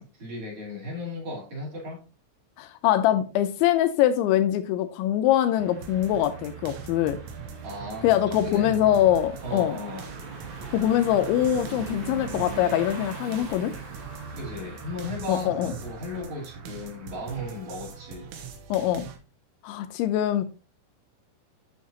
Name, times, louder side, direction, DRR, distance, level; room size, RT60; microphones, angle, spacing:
voice 1, 0.0-2.0 7.6-8.8 9.4-10.1 14.4-18.3, left 1 dB, 40° right, 4.0 m, -36 dB
voice 2, 2.6-7.2 8.0-9.8 10.7-13.7 15.3-15.7 18.7-19.1 19.6-20.5, left 11 dB, 80° left, 2.8 m, -23 dB
sound 1, 5.6-18.1, right 5 dB, 60° right, 1.5 m, -41 dB
sound 2, 5.8-19.2, right 6 dB, 75° right, 3.3 m, -43 dB
9.3 x 7.2 x 3.0 m
omnidirectional pair, 5.7 m